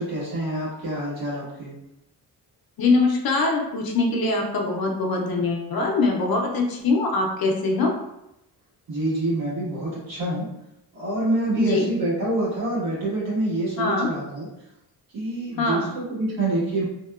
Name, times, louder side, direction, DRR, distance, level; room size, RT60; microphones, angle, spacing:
voice 1, 0.0-1.7 8.9-10.5 10.9-14.5 15.1-16.8, right 1 dB, 65° right, -8 dB, 1.5 m, -26 dB
voice 2, 2.8-7.9 11.5-11.9 13.8-14.1 15.6-15.9, left 3 dB, 60° left, 1 dB, 0.5 m, -23 dB
2.8 x 2.1 x 2.3 m, 0.86 s
wide cardioid pair, 175°, 40 cm